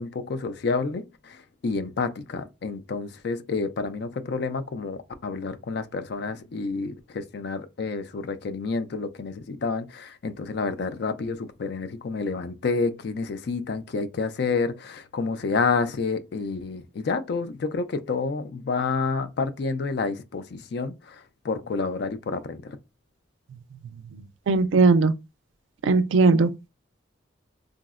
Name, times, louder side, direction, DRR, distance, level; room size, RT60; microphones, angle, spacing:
voice 1, 0.0-22.8, left 4 dB, 55° left, 0.4 m, -29 dB
voice 2, 24.5-25.1 25.8-26.7, right 3 dB, 75° right, 0.3 m, -19 dB
3.6 x 2.0 x 2.4 m
head